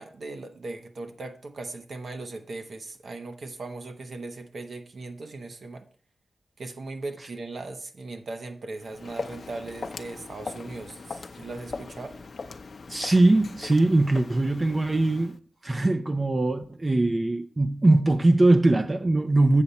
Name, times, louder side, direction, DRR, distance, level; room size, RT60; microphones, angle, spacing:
voice 1, 0.0-5.9 6.6-12.2, right 2 dB, 65° right, 0.9 m, -38 dB
Walk footsteps, 8.8-15.4, left 4 dB, 55° left, 0.6 m, -40 dB
voice 2, 12.9-15.4 15.6-19.6, right 2 dB, 25° right, 0.5 m, -21 dB
8.1 x 7.2 x 4.1 m
wide cardioid pair, 150°, 0 cm